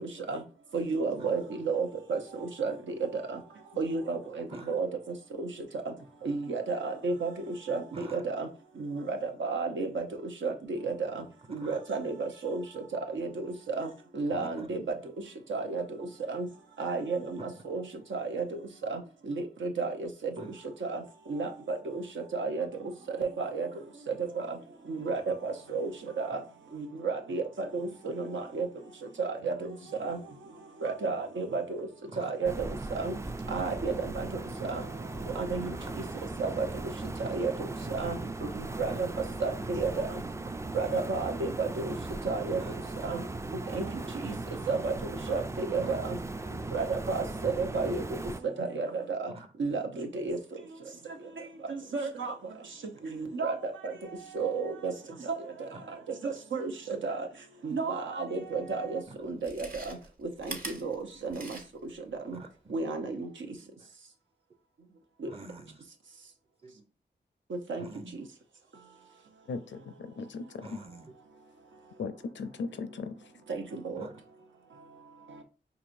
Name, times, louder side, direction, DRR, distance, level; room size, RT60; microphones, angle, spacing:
voice 1, 0.7-2.2 2.6-2.7 3.8-4.2 4.7-4.9 5.4-5.5 6.2-7.3 7.7-7.8 8.1-8.5 8.8-9.9 10.4-10.5 10.8-10.9 11.5-12.6 13.1-13.9 14.2-14.8 15.5-15.8 16.3-16.5 16.8-17.4 17.7-17.8 18.1-18.4 18.9-19.0 19.3-20.1 21.3-21.9 22.3-22.7 23.2-23.7 24.9-25.9 26.2-26.4 26.7-27.4 27.7-27.9 28.2-28.7 29.2-29.5 30.0-30.2 30.8-31.9 32.2-32.7 32.9-33.1 33.5-34.3 34.7-34.8 35.4-35.7 36.4-36.7 37.2-37.5 37.9-38.1 38.6-38.9 39.4-39.9 40.7-41.9 42.3-42.6 43.0-43.2 43.7-43.9 44.2-44.3 44.7-44.9 45.3-46.2 46.7-48.0 48.6-49.3 49.6-50.4 51.9-52.3 53.1-53.7 54.3-54.9 56.2-56.7 57.0-57.2 57.6-59.9 60.4-60.5 60.8-60.9 61.2-61.4 62.3-62.4 62.7-63.3 67.7-67.8 73.5-73.6 73.9-74.0, right 4 dB, 75° right, 0.7 m, -31 dB
voice 2, 14.3-14.9 20.4-20.5 32.1-32.3 35.7-36.1 38.8-39.0 42.6-42.7 45.8-46.0 49.3-49.5 55.7-55.8 59.1-59.2 62.3-62.5 63.4-63.7 65.3-65.8 66.6-66.8 67.8-68.2 70.6-71.1 74.0-74.1, right 1 dB, 30° right, 0.7 m, -46 dB
sound 1, 32.5-48.4, right 2 dB, 15° right, 0.3 m, -38 dB
Chewing mastication, 58.5-58.6 59.3-62.0 62.3-62.4, right 2 dB, 50° right, 1.0 m, -43 dB
voice 3, 69.5-70.8 72.0-73.3, left 4 dB, 70° left, 0.5 m, -38 dB
4.8 x 2.9 x 2.6 m
cardioid pair, 40°, 20 cm